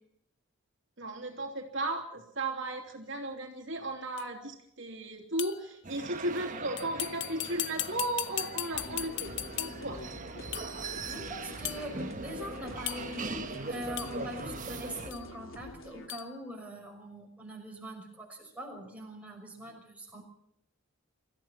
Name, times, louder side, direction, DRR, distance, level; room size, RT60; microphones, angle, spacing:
voice 1, 1.0-10.0, right 2 dB, 65° right, 1 dB, 3.0 m, -35 dB
sound 1, 4.2-4.3 5.4-5.7 6.8-10.0 10.5-10.8 11.6-11.9 12.9-13.3 14.0-14.2 15.1-15.2 16.1-16.3, left 13 dB, 60° left, 1.0 m, -37 dB
sound 2, 5.8-15.1, right 3 dB, 40° right, 1.3 m, -41 dB
sound 3, 8.7-16.1, left 1 dB, 85° left, 3.0 m, -46 dB
voice 2, 11.1-20.2, equal, 5° right, 0 dB, 6.1 m, -43 dB
25.0 x 15.0 x 7.5 m, 0.74 s
head